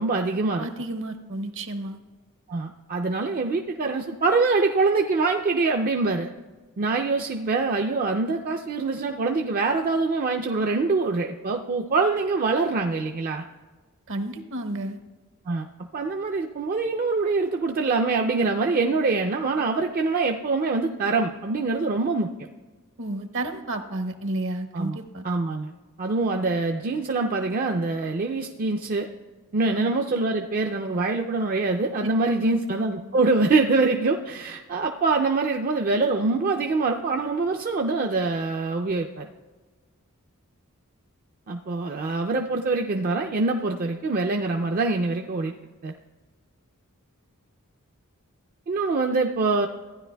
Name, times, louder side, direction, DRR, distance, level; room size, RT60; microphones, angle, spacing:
voice 1, 0.0-0.7 2.5-6.3 6.8-13.4 15.5-15.7 15.9-22.3 24.7-25.0 25.2-25.7 26.0-29.1 29.5-39.3 41.5-45.5 45.8-45.9 48.7-49.7, right 3 dB, 40° right, 3 dB, 0.4 m, -24 dB
voice 2, 0.6-2.0 14.1-15.0 23.0-25.3 29.6-29.9 32.0-32.7, right 1 dB, 60° right, 7 dB, 0.8 m, -32 dB
15.0 x 9.8 x 2.2 m, 1.3 s
head